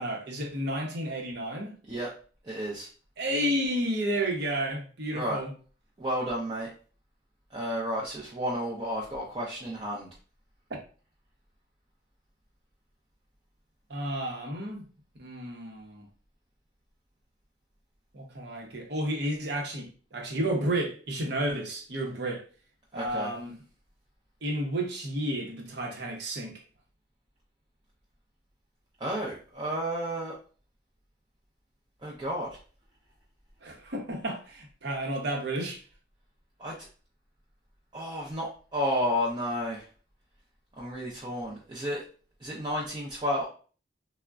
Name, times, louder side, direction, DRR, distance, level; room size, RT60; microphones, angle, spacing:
voice 1, 0.0-1.7 3.2-5.5 13.9-14.9 15.2-16.0 18.1-22.4 22.9-23.6 24.4-26.5 33.6-35.8, right 1 dB, 60° right, 0.7 m, -31 dB
voice 2, 2.4-2.9 5.1-5.4 6.0-6.7 7.5-10.1 22.9-23.3 29.0-30.4 32.0-32.6 36.6-36.9 37.9-39.9 40.8-42.0 42.4-43.5, equal, 25° right, 0.5 m, -32 dB
3.5 x 2.1 x 2.3 m
head